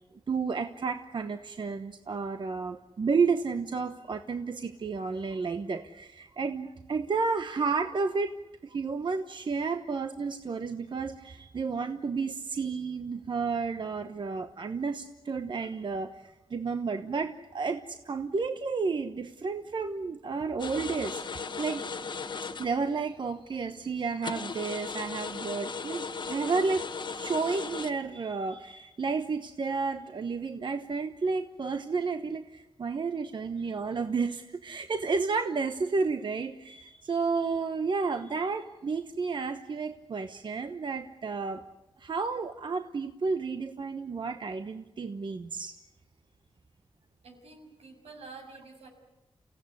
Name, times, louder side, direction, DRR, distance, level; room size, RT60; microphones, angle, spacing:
voice 1, 0.3-8.4 8.6-21.8 22.6-41.6 42.0-45.7, right 4 dB, 50° right, 8 dB, 1.0 m, -31 dB
sound 1, 20.6-23.0 23.2-23.3 23.8-23.9 24.2-27.9, left 5 dB, 50° left, 1.2 m, -37 dB
voice 2, 47.2-48.9, right 3 dB, 85° right, 3 dB, 6.7 m, -48 dB
29.5 x 16.5 x 9.8 m, 1.0 s
wide cardioid pair, 125°, 10 cm